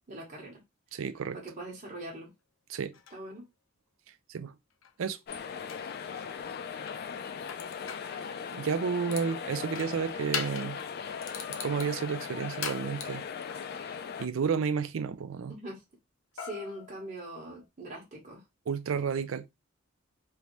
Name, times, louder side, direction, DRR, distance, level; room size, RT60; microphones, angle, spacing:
voice 1, 0.1-0.6 1.3-2.3 3.1-3.5 15.5-15.8 16.3-18.4, right 1 dB, 40° right, 1.1 m, -42 dB
voice 2, 0.9-1.4 2.7-3.0 4.3-4.6 5.0-5.2 8.1-10.8 11.5-13.3 14.2-15.6 18.7-19.5, right 6 dB, 85° right, 0.4 m, -31 dB
sound 1, 2.9-3.2 4.8-4.9 5.3-5.9 6.9-8.1 8.7-9.3 9.7-10.8 11.2-13.6 16.4-17.6, left 7 dB, 85° left, 0.7 m, -40 dB
sound 2, 5.3-14.3, left 6 dB, 50° left, 0.4 m, -39 dB
3.3 x 2.6 x 3.0 m
head